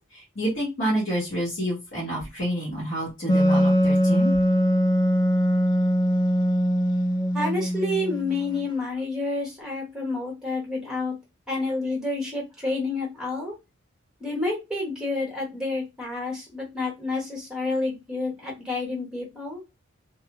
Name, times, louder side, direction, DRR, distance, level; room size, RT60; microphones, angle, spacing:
voice 1, 0.1-4.3, right 1 dB, 65° left, -5 dB, 1.2 m, -28 dB
Wind instrument woodwind instrument, 3.3-8.7, equal, 20° left, 0.3 m, -22 dB
voice 2, 7.3-11.1 11.5-13.5 14.2-19.6, left 2 dB, 5° right, -2 dB, 1.0 m, -29 dB
2.5 x 2.1 x 2.9 m, 0.24 s
head